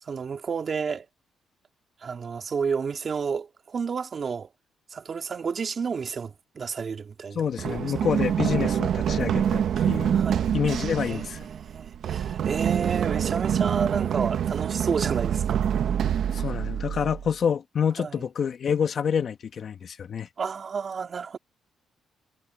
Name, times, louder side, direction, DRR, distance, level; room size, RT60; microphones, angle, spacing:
voice 1, 0.0-1.1 2.0-4.5 4.9-7.4 7.7-7.8 10.1-10.5 11.1-15.6 18.0-18.2 20.4-21.4, right 6 dB, 45° right, 2.0 m, -31 dB
voice 2, 7.4-10.2 10.5-11.5 16.3-20.3, left 7 dB, 55° left, 1.7 m, -27 dB
Run, 7.6-17.3, right 9 dB, 65° right, 1.2 m, -26 dB
cardioid pair, 90°, 0 cm